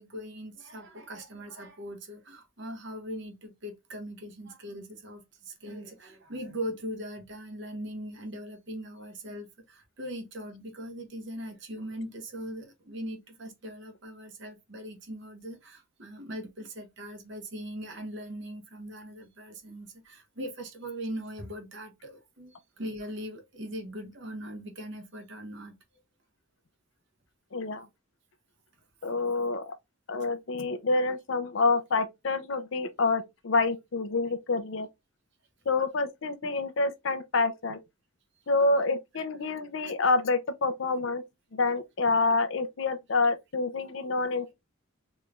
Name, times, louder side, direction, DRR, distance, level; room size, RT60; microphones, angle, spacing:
voice 1, 0.0-25.7 29.0-29.2, equal, 55° right, 0.9 m, -40 dB
voice 2, 27.5-27.9 29.0-29.7 30.1-34.9 35.7-37.8 38.5-41.2 41.5-44.5, left 3 dB, 60° left, 0.5 m, -27 dB
3.3 x 3.1 x 2.4 m
head